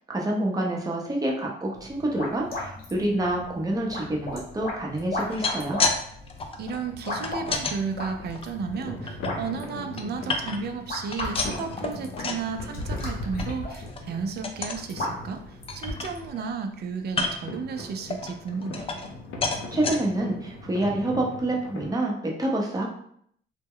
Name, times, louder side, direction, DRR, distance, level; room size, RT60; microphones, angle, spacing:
voice 1, 0.1-5.8 19.7-22.9, right 1 dB, 20° right, -1 dB, 0.7 m, -27 dB
sound 1, 1.7-16.3, left 2 dB, 50° left, 0.9 m, -36 dB
sound 2, 5.1-6.0 6.3-7.8 8.3-9.3 9.7-10.8 11.1-12.5 12.8-13.1 13.4-13.5 13.9-14.1 14.4-14.8 15.3-15.4 15.7-16.5 17.1-17.6 18.1-19.2 19.4-20.0 20.6-20.7 21.0-21.1, left 3 dB, 30° left, 0.4 m, -30 dB
voice 2, 6.6-18.9, right 5 dB, 55° right, 6 dB, 0.4 m, -33 dB
sound 3, 7.1-21.9, left 2 dB, 75° left, 0.6 m, -41 dB
2.1 x 2.1 x 3.6 m, 0.67 s
cardioid pair, 90°, 20 cm